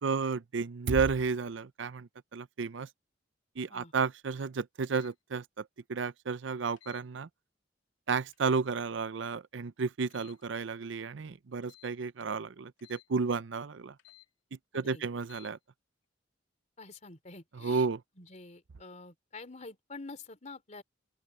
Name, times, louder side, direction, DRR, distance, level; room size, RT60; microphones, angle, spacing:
voice 1, 0.0-2.9 3.6-7.3 8.1-13.9 14.7-15.6 17.6-18.0, right 5 dB, 75° right, 0.6 m, -32 dB
sound 1, 4.8-5.1 6.8-7.1 8.3-8.6 10.1-10.4 11.6-12.0 12.8-13.1 14.0-14.3 15.2-15.5, left 14 dB, 80° left, 2.9 m, -57 dB
voice 2, 14.7-15.0 16.8-17.9 18.2-20.8, left 3 dB, 40° left, 3.4 m, -47 dB
open air
head